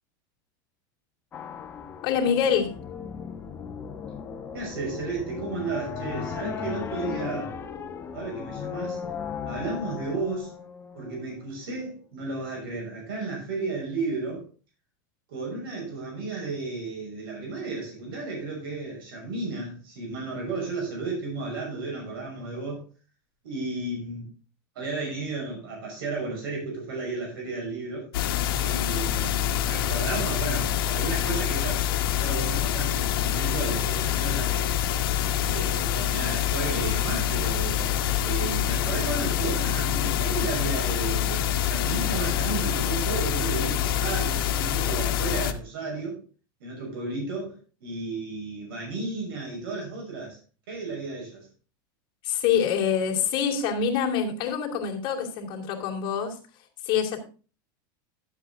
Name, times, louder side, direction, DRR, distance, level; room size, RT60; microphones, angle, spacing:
sound 1, 1.3-11.4, left 6 dB, 20° left, 1.0 m, -36 dB
voice 1, 2.0-2.7 52.2-56.4 56.8-57.2, left 7 dB, 45° left, 0 dB, 2.6 m, -25 dB
voice 2, 4.5-7.5 8.1-9.0 9.4-10.5 10.9-14.5 15.3-22.8 23.4-24.3 24.7-28.1 28.6-34.7 35.5-38.0 38.2-46.2 46.6-50.4 50.7-51.5, right 3 dB, 85° right, -1 dB, 6.2 m, -33 dB
sound 2, 28.1-45.5, left 10 dB, 80° left, 1.1 m, -26 dB
11.5 x 7.8 x 3.7 m, 0.36 s
supercardioid pair, 150°, 12 cm